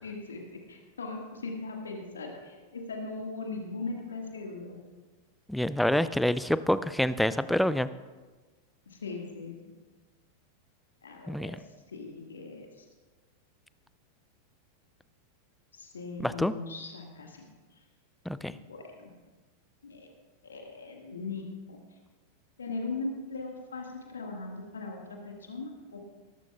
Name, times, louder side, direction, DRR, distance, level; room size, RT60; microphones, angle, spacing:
voice 1, 0.0-4.8 8.9-9.8 11.0-12.9 15.7-17.5 17.7-17.8 18.4-19.1 19.8-20.1 20.4-21.8 22.6-26.0, left 3 dB, 70° left, 1 dB, 1.8 m, -39 dB
voice 2, 5.5-7.9 11.3-11.6 16.2-16.5 18.3-18.6, left 1 dB, ahead, 15 dB, 0.4 m, -27 dB
20.0 x 12.0 x 2.4 m, 1.3 s
figure-of-eight pair, 90°, 0 cm